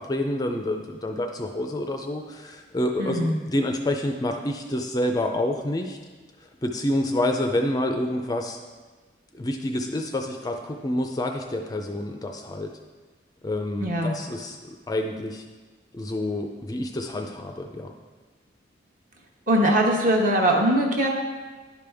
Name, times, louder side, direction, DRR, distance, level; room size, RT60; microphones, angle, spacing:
voice 1, 0.0-6.0 6.4-8.6 9.3-12.7 13.4-15.4 15.9-17.9, left 1 dB, 20° left, 4 dB, 0.4 m, -28 dB
voice 2, 3.0-3.4 13.8-14.2 19.5-21.1, right 1 dB, 45° right, 1 dB, 1.0 m, -21 dB
10.5 x 5.1 x 3.4 m, 1.4 s
head